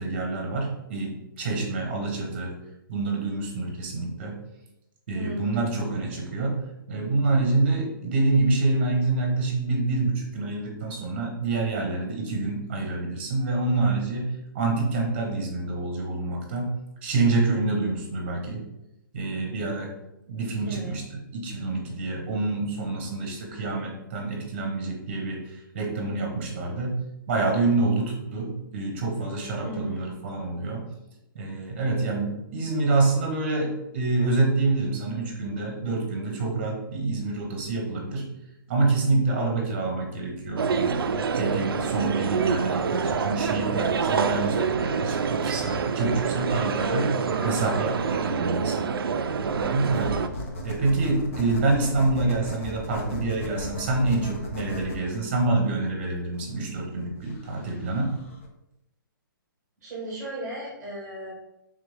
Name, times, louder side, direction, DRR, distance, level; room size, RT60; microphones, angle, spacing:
voice 1, 0.0-2.5 2.9-4.3 5.1-16.7 17.0-18.6 19.1-19.9 20.3-30.8 31.3-38.3 38.7-41.0 41.3-48.9 49.5-50.1 50.6-58.2, right 3 dB, 30° right, 0 dB, 1.0 m, -27 dB
voice 2, 5.1-5.7 20.6-20.9 29.6-30.2 47.3-48.2 59.8-61.3, right 1 dB, 10° right, -5 dB, 1.2 m, -36 dB
sound 1, 40.6-50.3, right 5 dB, 80° right, 0.4 m, -26 dB
sound 2, 49.9-58.5, left 1 dB, 35° left, 0.6 m, -37 dB
3.7 x 3.5 x 3.3 m, 0.87 s
hypercardioid pair, 170°, 12 cm